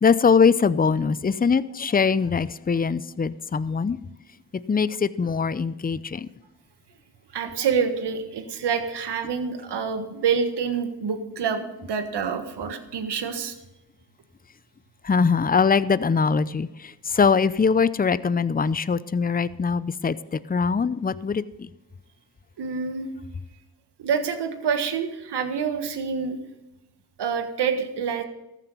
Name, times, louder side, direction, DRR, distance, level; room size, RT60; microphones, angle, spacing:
voice 1, 0.0-4.0 4.7-6.3 15.0-20.2 20.5-21.7, left 5 dB, 20° left, 17 dB, 0.6 m, -22 dB
voice 2, 7.3-13.5 22.6-23.1 24.0-26.4 27.2-28.2, right 6 dB, 75° right, 8 dB, 1.5 m, -27 dB
14.5 x 9.2 x 5.5 m, 0.98 s
supercardioid pair, 45°, 41 cm